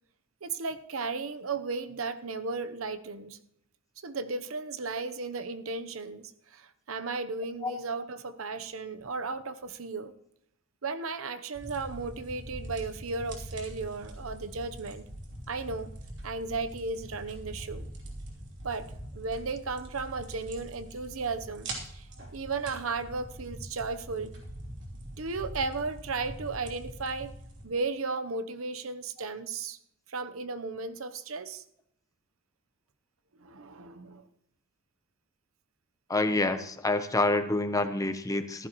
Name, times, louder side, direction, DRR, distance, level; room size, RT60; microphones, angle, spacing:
voice 1, 0.4-3.4 4.0-10.1 10.8-15.1 15.5-15.9 16.2-17.9 18.6-24.3 25.2-27.3 27.6-29.8 30.1-31.6 33.4-34.3, right 4 dB, 85° right, 11 dB, 0.9 m, -35 dB
sound 1, 11.5-27.7, right 1 dB, 60° right, 3.2 m, -43 dB
voice 2, 36.1-38.7, left 2 dB, 15° left, 9 dB, 0.8 m, -27 dB
15.0 x 13.5 x 3.1 m, 0.75 s
head